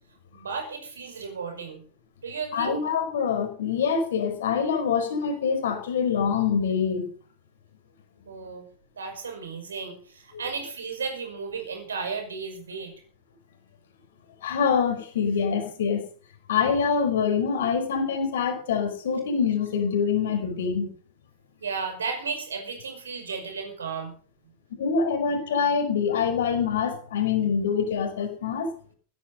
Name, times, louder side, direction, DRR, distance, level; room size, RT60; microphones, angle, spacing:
voice 1, 0.3-1.8 2.2-2.8 8.3-8.6 9.0-12.9 21.6-24.1, right 5 dB, 70° right, 5 dB, 5.6 m, -34 dB
voice 2, 2.5-7.0 10.3-10.4 14.4-16.0 16.5-20.9 24.8-28.7, left 6 dB, 60° left, 5 dB, 5.0 m, -25 dB
16.0 x 13.5 x 5.4 m, 0.43 s
figure-of-eight pair, 90°, 0 cm